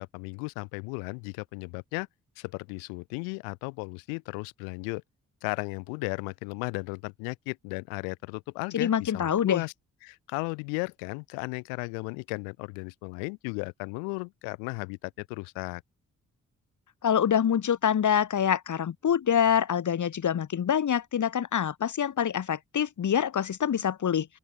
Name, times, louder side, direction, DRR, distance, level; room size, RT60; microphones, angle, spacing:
voice 1, 0.0-2.1 2.4-5.0 5.4-9.7 10.0-15.8, left 40 dB or more, 90° left, 5.2 m, -35 dB
voice 2, 8.7-9.6 17.0-24.3, left 8 dB, 60° left, 2.7 m, -25 dB
open air
hypercardioid pair, 45°, 34 cm